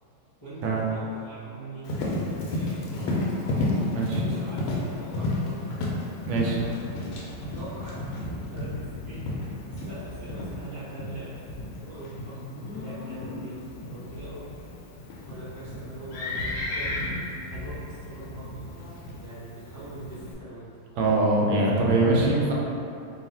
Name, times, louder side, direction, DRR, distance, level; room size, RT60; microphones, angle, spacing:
voice 1, 0.4-3.2 3.9-5.6 6.4-6.8 7.1-8.0 8.4-9.3 9.7-12.4 12.7-14.5 15.2-17.0 17.5-18.7 19.1-20.7, right 1 dB, 25° left, -13 dB, 0.4 m, -42 dB
Livestock farm animals working animals, 1.9-20.3, left 2 dB, 85° left, 1.4 m, -33 dB
voice 2, 6.3-6.6 21.0-22.5, right 2 dB, 85° right, -3 dB, 1.4 m, -22 dB
3.4 x 2.3 x 4.2 m, 2.7 s
omnidirectional pair, 2.2 m